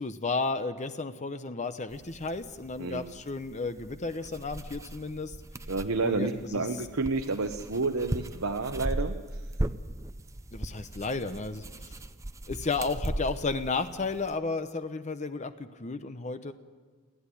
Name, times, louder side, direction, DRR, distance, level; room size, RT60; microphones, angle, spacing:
voice 1, 0.0-5.4 6.0-6.7 10.5-12.0 12.5-16.5, left 3 dB, 35° left, 10 dB, 0.8 m, -33 dB
sound 1, 1.9-14.3, right 1 dB, 15° right, 0.6 m, -38 dB
voice 2, 2.8-3.1 5.7-9.4, right 3 dB, 70° right, 5 dB, 1.0 m, -30 dB
29.0 x 10.5 x 9.9 m, 1.4 s
head